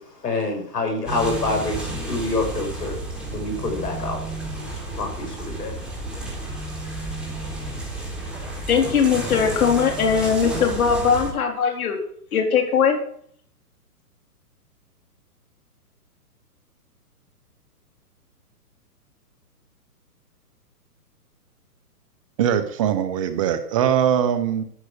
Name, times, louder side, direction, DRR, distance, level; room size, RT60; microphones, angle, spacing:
voice 1, 0.2-3.0 3.3-4.2 5.0-5.7, left 2 dB, 80° left, 3 dB, 6.3 m, -26 dB
sound 1, 1.1-11.3, right 1 dB, ahead, 3.9 m, -32 dB
voice 2, 8.7-12.0 12.3-13.0, left 6 dB, 60° left, 4 dB, 3.6 m, -20 dB
voice 3, 22.4-24.6, right 9 dB, 20° right, 11 dB, 0.6 m, -21 dB
13.5 x 7.6 x 6.7 m, 0.63 s
hypercardioid pair, 140°, 47 cm